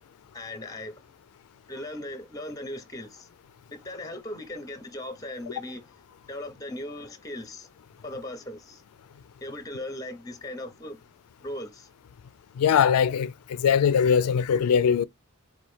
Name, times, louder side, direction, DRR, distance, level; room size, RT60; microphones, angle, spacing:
voice 1, 0.3-1.0 1.7-3.3 3.7-5.9 6.3-7.7 8.0-8.8 9.4-11.0 11.4-11.9, left 1 dB, 15° left, 0.6 m, -38 dB
voice 2, 12.6-15.0, left 7 dB, 90° left, 0.3 m, -21 dB
4.2 x 2.5 x 3.1 m
head